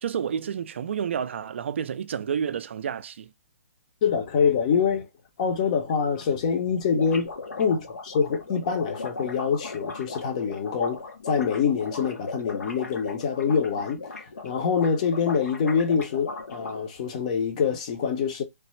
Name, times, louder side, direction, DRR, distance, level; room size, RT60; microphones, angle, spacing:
voice 1, 0.0-3.3, right 8 dB, 50° right, 0.4 m, -30 dB
voice 2, 4.0-5.1 5.4-7.3 7.6-18.4, left 6 dB, 30° left, 0.6 m, -25 dB
sound 1, 5.6-5.7 5.9-6.0 6.2-6.3 6.5-16.8, left 3 dB, 80° left, 1.0 m, -38 dB
3.2 x 2.1 x 3.0 m
hypercardioid pair, 165°, 8 cm